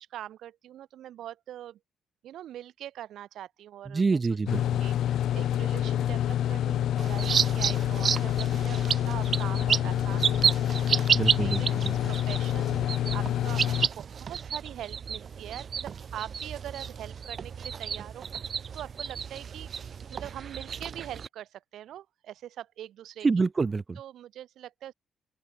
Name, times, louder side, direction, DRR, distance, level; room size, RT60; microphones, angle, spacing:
voice 1, 0.1-1.8 2.2-4.2 4.6-11.8 12.1-18.2 18.7-19.7 20.1-23.3 24.0-24.9, right 12 dB, 75° right, 3.2 m, -43 dB
voice 2, 3.9-4.6 11.1-11.9 23.2-24.0, right 4 dB, 30° right, 1.6 m, -27 dB
sound 1, 4.5-13.9, left 11 dB, 75° left, 1.3 m, -27 dB
sound 2, 7.0-21.3, right 7 dB, 50° right, 0.5 m, -31 dB
open air
cardioid pair, 90°, 0 cm